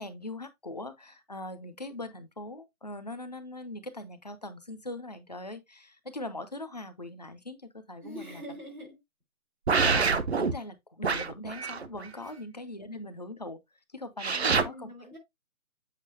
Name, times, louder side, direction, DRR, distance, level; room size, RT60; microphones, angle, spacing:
voice 1, 0.0-8.4 9.8-10.1 10.4-13.6 13.9-14.9, left 2 dB, 30° left, 0.6 m, -41 dB
voice 2, 8.0-9.0 12.2-12.3 14.3-15.2, equal, 85° right, 4.6 m, -44 dB
sound 1, 9.7-10.5 11.0-12.1 14.2-14.6, right 5 dB, 50° right, 0.7 m, -26 dB
7.5 x 5.8 x 2.7 m
figure-of-eight pair, 150°, 43 cm